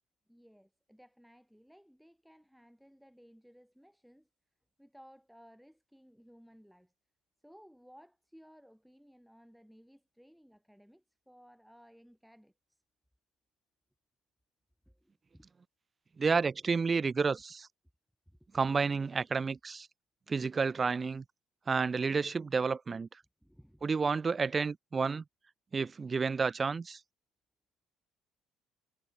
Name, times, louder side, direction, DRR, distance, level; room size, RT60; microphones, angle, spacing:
voice 1, 0.3-4.3 4.8-6.9 7.4-12.8 14.9-15.5 18.3-18.4 23.4-23.8, equal, ahead, 3.6 m, -59 dB
voice 2, 16.2-17.7 18.5-19.9 20.3-21.2 21.7-23.1 23.8-25.2 25.7-27.0, right 5 dB, 20° right, 0.4 m, -30 dB
cardioid pair, 160°, 0 cm